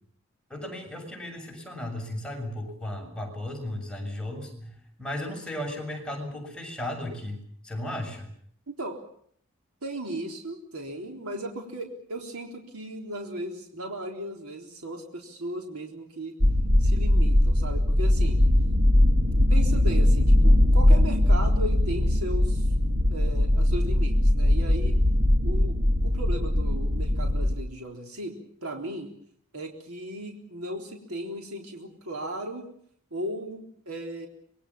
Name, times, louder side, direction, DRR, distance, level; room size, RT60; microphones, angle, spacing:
voice 1, 0.5-8.3, left 1 dB, 5° left, 1 dB, 6.9 m, -35 dB
voice 2, 8.7-9.0 9.8-16.3 16.8-18.4 19.5-22.7 23.1-25.0 25.4-25.8 26.0-29.1 29.5-32.6 33.1-34.3, right 1 dB, 90° right, 2 dB, 3.9 m, -36 dB
sound 1, 16.4-27.6, left 1 dB, 50° right, 2.2 m, -21 dB
26.0 x 21.5 x 7.2 m, 0.64 s
head